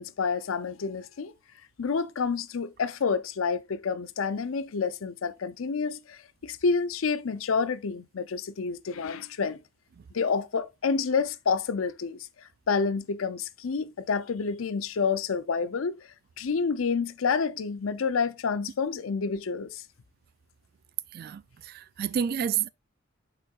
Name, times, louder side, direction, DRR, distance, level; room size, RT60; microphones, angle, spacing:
voice 1, 0.0-1.3 1.8-9.6 10.1-12.3 12.7-16.0 16.4-19.8, left 5 dB, 90° left, 0.5 m, -29 dB
voice 2, 21.1-22.7, right 8 dB, 50° right, 0.3 m, -30 dB
7.3 x 5.7 x 2.4 m
head